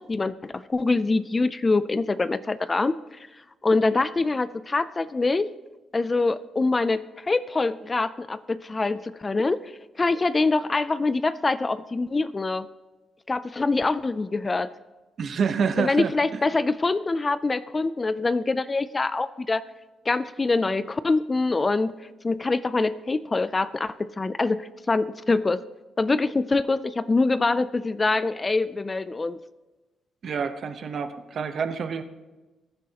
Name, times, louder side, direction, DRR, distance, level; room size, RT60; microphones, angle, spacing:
voice 1, 0.0-3.3 3.6-5.5 5.9-9.7 10.0-12.7 13.3-14.7 15.8-19.6 20.1-21.9 22.2-25.6 26.0-29.4, left 3 dB, 20° left, 15 dB, 0.3 m, -24 dB
voice 2, 15.2-16.4 30.2-32.0, right 6 dB, 50° right, 9 dB, 0.9 m, -27 dB
21.0 x 10.0 x 2.9 m, 1.2 s
cardioid pair, 140°, 0 cm